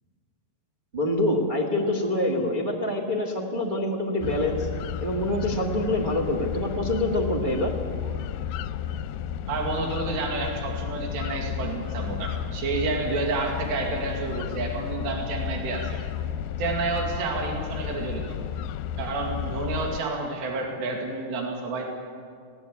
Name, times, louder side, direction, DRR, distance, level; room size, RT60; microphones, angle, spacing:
voice 1, 0.9-4.7 5.0-7.7, left 1 dB, 40° right, 1 dB, 0.6 m, -26 dB
sound 1, 4.2-20.0, left 9 dB, 80° left, 2.3 m, -32 dB
voice 2, 9.5-16.0 16.6-18.2 19.0-21.9, right 3 dB, 85° right, 1 dB, 4.4 m, -30 dB
23.0 x 17.0 x 8.5 m, 2.2 s
omnidirectional pair, 4.8 m